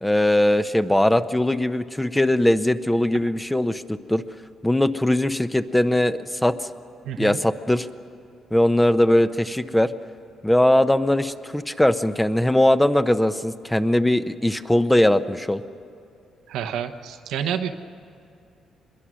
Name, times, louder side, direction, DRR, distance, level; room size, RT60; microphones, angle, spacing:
voice 1, 0.0-4.2 4.6-6.6 7.2-7.9 8.5-9.9 10.4-15.6, left 1 dB, 5° left, 11 dB, 0.7 m, -20 dB
voice 2, 7.0-7.4 16.5-17.7, right 9 dB, 85° right, 7 dB, 1.0 m, -28 dB
25.5 x 22.0 x 6.3 m, 2.5 s
cardioid pair, 90°, 0 cm